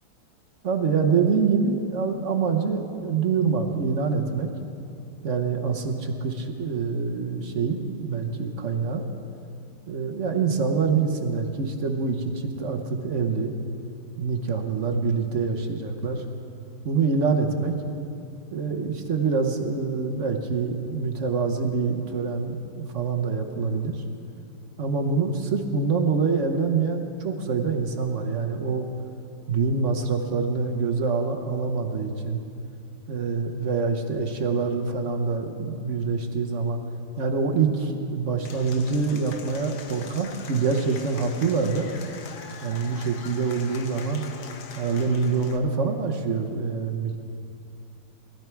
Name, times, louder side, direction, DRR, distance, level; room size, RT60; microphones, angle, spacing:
voice 1, 0.6-4.5 5.2-9.1 9.9-13.5 14.2-16.2 16.8-17.8 18.5-24.0 24.8-28.9 29.5-32.4 33.1-36.8 37.2-41.9 42.6-44.2 44.7-47.2, right 5 dB, 50° right, 3 dB, 1.2 m, -25 dB
Applause / Crowd, 38.4-45.6, left 6 dB, 65° left, 1.4 m, -43 dB
20.5 x 13.5 x 4.6 m, 2.5 s
omnidirectional pair, 1.9 m